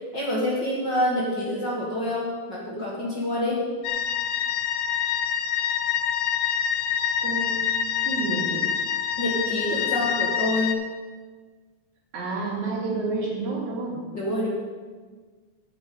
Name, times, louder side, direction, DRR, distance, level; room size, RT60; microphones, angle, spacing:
voice 1, 0.1-3.6 9.2-10.8 14.1-14.5, left 1 dB, 40° left, -5 dB, 2.2 m, -27 dB
sound 1, 3.8-10.7, left 8 dB, 75° left, 2.0 m, -26 dB
voice 2, 7.2-7.7 8.1-8.6 12.1-14.0, right 3 dB, 65° right, -3 dB, 3.5 m, -29 dB
9.7 x 6.3 x 8.6 m, 1.5 s
omnidirectional pair, 3.8 m